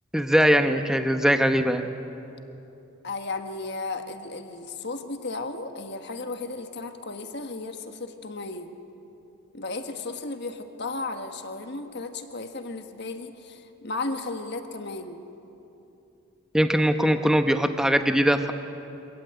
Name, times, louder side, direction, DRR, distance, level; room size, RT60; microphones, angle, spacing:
voice 1, 0.1-1.9 16.5-18.5, equal, 5° right, 7 dB, 0.9 m, -21 dB
voice 2, 3.0-8.7 9.5-15.2, left 3 dB, 50° left, 6 dB, 1.4 m, -34 dB
25.5 x 15.5 x 9.1 m, 2.9 s
head